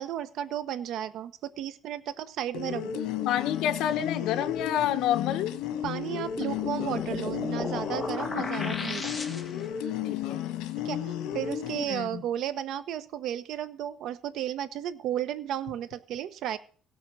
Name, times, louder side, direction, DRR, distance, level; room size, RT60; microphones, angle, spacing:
voice 1, 0.0-3.0 5.8-9.1 10.8-16.6, right 11 dB, 65° right, 13 dB, 1.0 m, -34 dB
sound 1, 2.5-11.8, left 10 dB, 90° left, 1.5 m, -33 dB
voice 2, 3.3-5.5 8.4-8.8 10.1-10.4 11.8-12.2, left 10 dB, 70° left, 6 dB, 1.2 m, -29 dB
sound 2, 6.3-9.8, left 3 dB, 15° left, 1.9 m, -37 dB
16.5 x 7.2 x 6.3 m, 0.43 s
cardioid pair, 145°, 0 cm